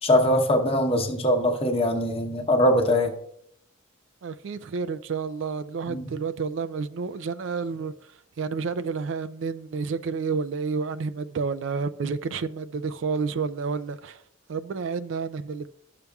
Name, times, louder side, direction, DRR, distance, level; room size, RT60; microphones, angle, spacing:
voice 1, 0.0-3.1 5.9-6.1, left 1 dB, 30° left, 0.9 m, -22 dB
voice 2, 4.2-14.2 14.5-15.7, right 5 dB, 70° right, 0.4 m, -30 dB
12.0 x 6.7 x 2.3 m
head